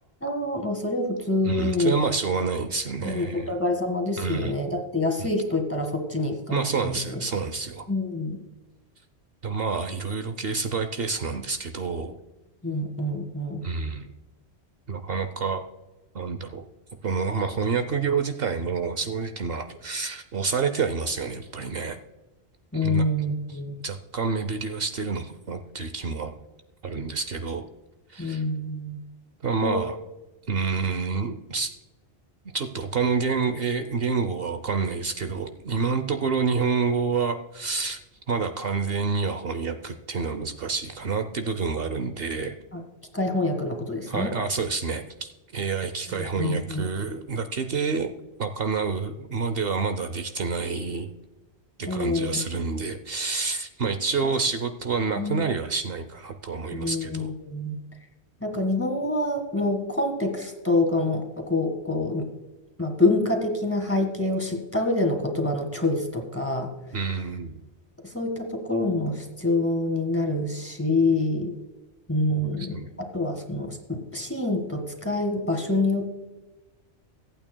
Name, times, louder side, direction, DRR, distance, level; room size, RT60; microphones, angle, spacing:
voice 1, 0.2-2.0 3.0-7.2 7.9-8.4 12.6-13.7 22.7-23.7 28.2-29.0 29.6-29.8 42.7-42.8 43.1-44.3 46.1-46.9 51.9-52.4 54.2-54.3 55.2-55.4 56.7-57.8 58.4-62.3 62.8-66.7 68.0-71.6 72.1-72.8 73.1-76.1, left 2 dB, 10° left, 3 dB, 1.7 m, -26 dB
voice 2, 1.4-3.5 4.2-4.5 5.2-5.3 6.5-7.9 9.4-12.2 13.6-14.1 14.9-15.6 16.1-16.6 17.0-22.0 22.7-23.1 23.8-26.3 26.8-27.6 28.1-28.4 29.4-30.0 30.5-31.7 32.5-38.0 38.3-42.6 44.1-48.1 48.4-51.1 51.8-57.3 66.9-67.6 72.3-72.9, right 5 dB, 60° right, 8 dB, 0.9 m, -28 dB
24.0 x 8.9 x 2.2 m, 1.1 s
omnidirectional pair, 1.1 m